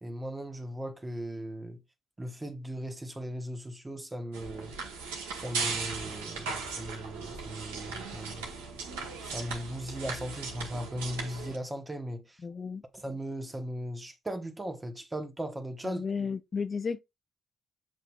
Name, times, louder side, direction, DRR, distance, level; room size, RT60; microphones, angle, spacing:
voice 1, 0.0-1.8 2.2-4.7 5.3-8.5 9.2-12.4 12.9-16.0, right 1 dB, 20° right, 1.0 m, -38 dB
sound 1, 4.3-11.6, right 4 dB, 90° right, 1.1 m, -37 dB
voice 2, 12.4-12.8 15.8-17.0, left 5 dB, 45° left, 0.5 m, -33 dB
7.5 x 2.7 x 2.3 m
hypercardioid pair, 50°, 0 cm